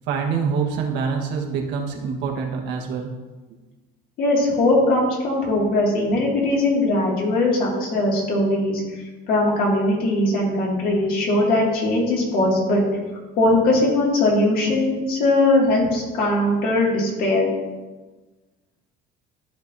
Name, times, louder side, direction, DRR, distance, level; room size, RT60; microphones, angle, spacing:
voice 1, 0.1-3.1, right 6 dB, 70° right, 1 dB, 1.4 m, -25 dB
voice 2, 4.2-8.8 9.3-12.8 13.4-17.5, left 2 dB, 55° left, -3 dB, 2.3 m, -20 dB
13.0 x 4.5 x 2.7 m, 1.2 s
cardioid pair, 155°, 18 cm